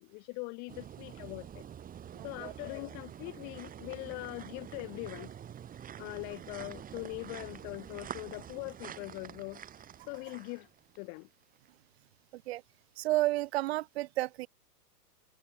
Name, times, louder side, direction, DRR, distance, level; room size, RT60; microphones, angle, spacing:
voice 1, 0.0-1.6 2.2-5.3 6.0-9.6 10.1-10.7 11.0-11.3, left 35 dB, 20° left, 0.4 m, -42 dB
sound 1, 0.7-11.0 11.6-11.7, right 9 dB, 15° right, 1.6 m, -47 dB
voice 2, 2.1-2.5 12.3-12.6 13.0-14.5, right 17 dB, 40° right, 0.5 m, -32 dB
hypercardioid pair, 125°, 48 cm